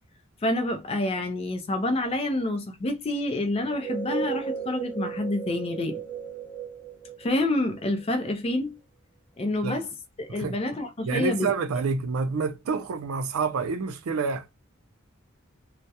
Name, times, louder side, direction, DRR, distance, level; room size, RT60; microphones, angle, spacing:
voice 1, 0.4-6.0 7.2-8.7 9.4-9.9 10.2-11.5, left 1 dB, 30° left, 0.4 m, -28 dB
sound 1, 3.6-8.2, right 7 dB, 5° right, 0.7 m, -35 dB
voice 2, 11.0-14.5, right 4 dB, 85° right, 0.4 m, -28 dB
2.3 x 2.0 x 2.7 m
head